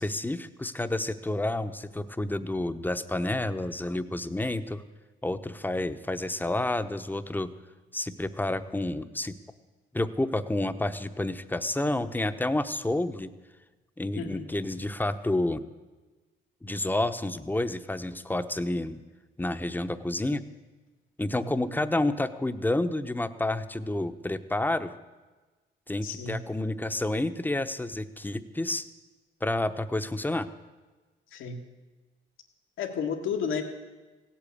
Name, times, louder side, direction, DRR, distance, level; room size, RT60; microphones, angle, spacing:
voice 1, 0.0-4.8 5.2-7.5 7.9-9.4 9.9-13.3 14.0-15.6 16.6-19.0 19.4-20.5 21.2-24.9 25.9-28.9 29.4-30.5, left 1 dB, 10° left, 10 dB, 0.8 m, -29 dB
voice 2, 14.1-14.5 21.4-21.5 26.0-26.4 31.3-31.6 32.8-33.6, left 6 dB, 85° left, 4 dB, 1.7 m, -32 dB
16.0 x 8.4 x 8.6 m, 1.2 s
cardioid pair, 90°, 20 cm